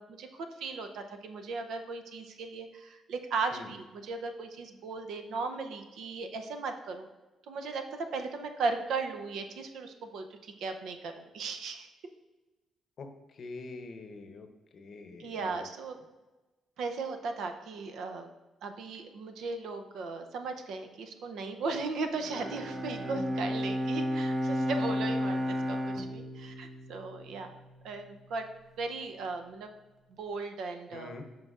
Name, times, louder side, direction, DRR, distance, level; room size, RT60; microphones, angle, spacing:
voice 1, 0.0-7.1 7.5-11.9 15.2-16.0 16.8-18.3 18.6-27.6 27.8-28.5 28.8-29.7 30.1-31.1, right 4 dB, 75° right, 6 dB, 0.6 m, -37 dB
voice 2, 13.0-14.5 14.7-15.7 30.9-31.2, left 3 dB, 55° left, 7 dB, 0.7 m, -45 dB
Bowed string instrument, 22.2-27.7, left 1 dB, 25° right, 0.5 m, -33 dB
7.7 x 5.4 x 2.4 m, 1.1 s
cardioid pair, 90°, 0 cm